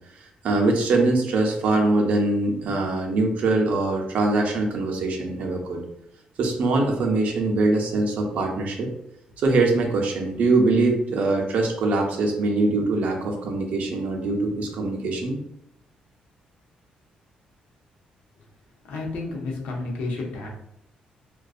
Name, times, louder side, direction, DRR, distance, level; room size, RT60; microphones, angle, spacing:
voice 1, 0.4-5.8 6.4-8.9 9.4-15.4, right 2 dB, 60° right, 1 dB, 0.5 m, -23 dB
voice 2, 18.9-20.5, left 3 dB, 85° left, -1 dB, 0.7 m, -31 dB
2.5 x 2.2 x 2.4 m, 0.77 s
cardioid pair, 150°, 3 cm